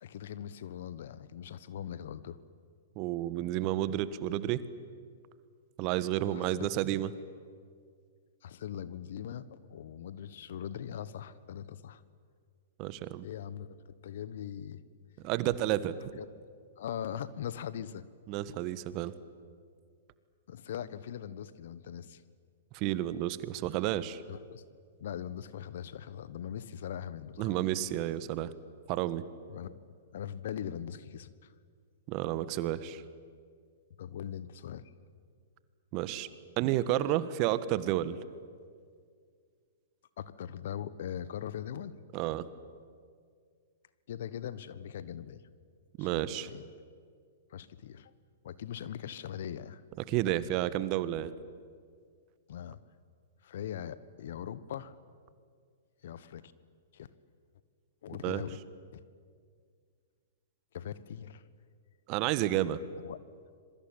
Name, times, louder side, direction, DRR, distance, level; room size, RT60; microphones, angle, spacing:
voice 1, 0.0-2.4 5.9-6.7 8.4-12.0 13.2-13.8 14.0-14.8 16.2-16.3 16.8-18.1 20.5-22.2 24.3-24.7 25.0-27.5 29.5-29.8 30.1-31.5 34.0-34.9 40.2-41.9 44.1-45.5 46.0-46.6 47.5-48.1 48.4-49.8 52.5-52.8 53.4-54.9 56.0-56.5 56.9-57.1 58.0-58.6 58.9-59.0 60.7-61.4 63.0-63.2, left 9 dB, 60° left, 16 dB, 1.2 m, -41 dB
voice 2, 2.9-4.6 5.8-7.1 12.8-13.2 15.2-15.9 18.3-19.1 22.7-24.2 27.4-28.5 28.9-29.2 32.1-33.0 35.9-36.3 36.6-38.2 42.1-42.5 46.0-46.5 50.1-51.3 58.2-58.4 62.1-62.8, right 13 dB, 40° right, 15 dB, 1.3 m, -31 dB
26.5 x 22.5 x 9.1 m, 2.1 s
hypercardioid pair, 115°, 0 cm